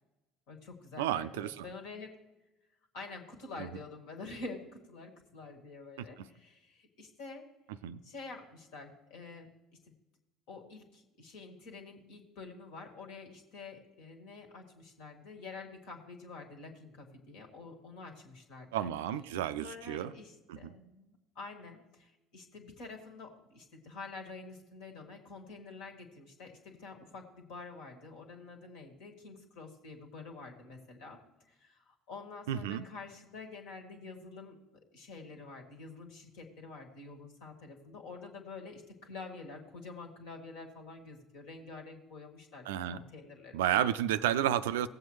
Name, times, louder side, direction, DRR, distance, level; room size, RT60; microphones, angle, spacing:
voice 1, 0.5-2.2 2.9-7.5 8.0-9.5 9.9-10.0 10.5-18.9 19.6-34.6 34.9-44.0, left 3 dB, 65° left, 3 dB, 1.7 m, -48 dB
voice 2, 1.0-1.7 3.6-3.7 6.2-6.3 7.8-8.0 18.7-20.1 20.5-20.7 32.5-32.9 42.7-43.0 43.5-44.9, right 11 dB, 70° right, 14 dB, 0.4 m, -31 dB
17.5 x 7.8 x 3.2 m, 1.0 s
figure-of-eight pair, 60°, 0 cm